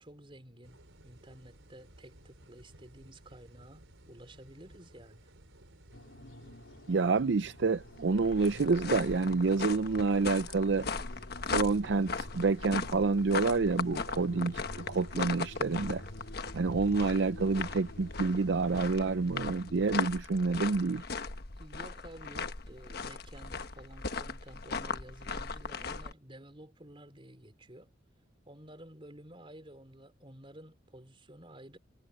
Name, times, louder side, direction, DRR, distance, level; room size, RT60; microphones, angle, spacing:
voice 1, 0.0-5.3 21.6-27.9 28.5-31.8, right 1 dB, 30° right, 3.9 m, -52 dB
sound 1, 0.6-19.4, right 1 dB, 90° right, 4.0 m, -57 dB
sound 2, 5.9-20.2, left 1 dB, 80° left, 3.1 m, -50 dB
voice 2, 6.9-10.9 11.5-16.0 16.5-21.0, right 4 dB, 65° right, 0.5 m, -28 dB
sound 3, 7.8-26.1, left 4 dB, 55° left, 1.3 m, -38 dB
head